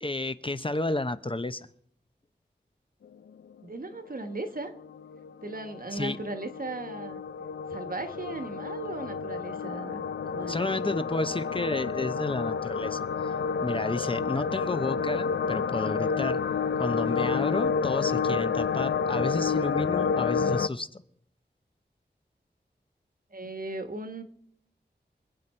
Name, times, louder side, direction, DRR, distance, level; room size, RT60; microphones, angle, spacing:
voice 1, 0.0-1.7 5.9-6.2 10.5-13.3 13.6-16.4 16.8-21.0, left 2 dB, 30° left, 12 dB, 0.7 m, -31 dB
voice 2, 3.6-4.7 5.4-7.2 7.7-10.7 23.3-24.2, right 2 dB, 50° right, 8 dB, 1.5 m, -37 dB
sound 1, 4.0-20.7, left 6 dB, 90° left, 0.5 m, -30 dB
25.0 x 8.4 x 4.4 m, 0.71 s
wide cardioid pair, 60°, 18 cm